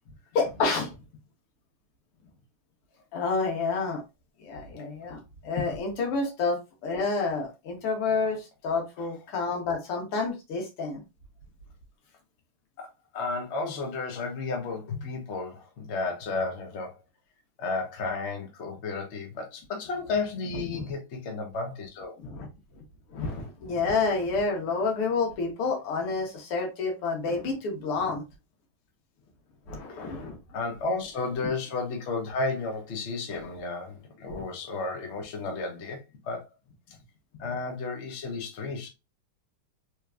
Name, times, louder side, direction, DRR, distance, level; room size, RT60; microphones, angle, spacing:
voice 1, 0.3-0.9 3.1-4.0 4.4-11.0 20.7-20.9 22.2-22.5 23.1-28.2 29.7-30.4 31.4-31.5 33.3-33.4 34.3-34.5, left 4 dB, 85° left, 2.2 m, -29 dB
voice 2, 12.8-16.9 17.6-22.1 30.5-36.5 37.4-38.9, left 3 dB, 45° left, 0.9 m, -33 dB
4.6 x 3.4 x 2.4 m
omnidirectional pair, 2.4 m